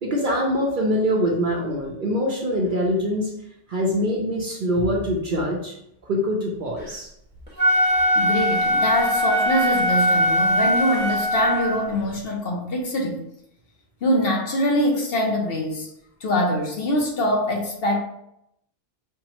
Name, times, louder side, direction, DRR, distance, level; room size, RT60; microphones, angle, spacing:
voice 1, 0.0-3.3 3.7-5.7 6.0-7.1, equal, 55° right, -1 dB, 0.6 m, -24 dB
Wind instrument woodwind instrument, 7.5-11.9, equal, 10° left, 0.9 m, -21 dB
voice 2, 8.2-13.2 14.0-15.9 16.2-18.0, equal, 55° left, 0 dB, 0.8 m, -23 dB
5.5 x 2.0 x 2.9 m, 0.77 s
omnidirectional pair, 1.3 m